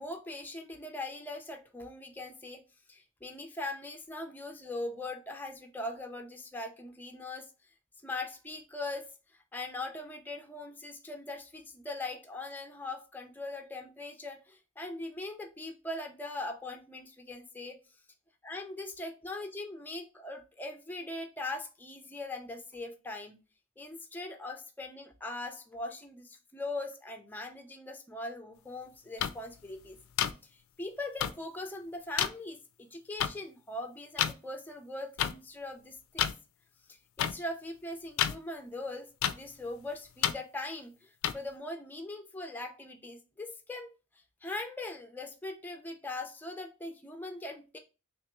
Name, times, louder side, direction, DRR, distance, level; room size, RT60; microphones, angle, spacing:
voice 1, 0.0-2.6 2.9-7.5 8.0-9.1 9.5-17.8 18.4-23.4 23.8-30.0 30.5-36.3 36.9-39.1 39.3-43.9 44.4-47.8, left 2 dB, 10° left, 5 dB, 0.4 m, -41 dB
sound 1, 29.2-29.3 30.2-30.3 31.2-31.3 32.2-32.3 33.2-33.3 34.2-34.3 35.2-35.3 36.2-36.3 37.2-37.3 38.2-38.3 39.2-39.3 40.2-40.3 41.2-41.3, left 10 dB, 80° left, 0.3 m, -28 dB
3.4 x 2.9 x 3.0 m, 0.31 s
head